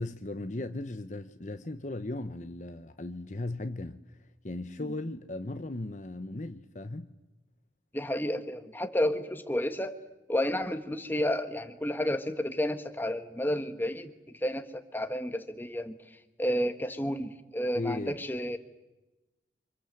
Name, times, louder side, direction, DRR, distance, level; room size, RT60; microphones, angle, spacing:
voice 1, 0.0-4.2 4.4-7.1 17.7-18.2, left 2 dB, 45° left, 0.9 m, -37 dB
voice 2, 7.9-10.0 10.3-18.6, left 1 dB, 10° left, 1.6 m, -31 dB
30.0 x 25.5 x 7.8 m
head